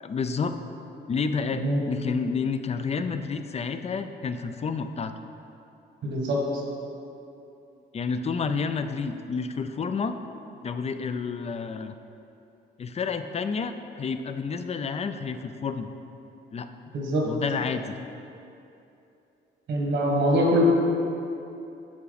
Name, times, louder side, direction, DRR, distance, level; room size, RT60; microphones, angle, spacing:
voice 1, 0.0-0.6 1.1-5.1 7.9-10.2 10.6-11.9 12.8-15.9 16.5-16.7 17.2-18.0, left 5 dB, 35° left, 9 dB, 0.4 m, -30 dB
voice 2, 6.0-6.4 16.9-17.3 19.7-20.6, right 1 dB, 65° right, -1 dB, 1.6 m, -23 dB
8.6 x 4.7 x 4.0 m, 2.8 s
cardioid pair, 90°, 20 cm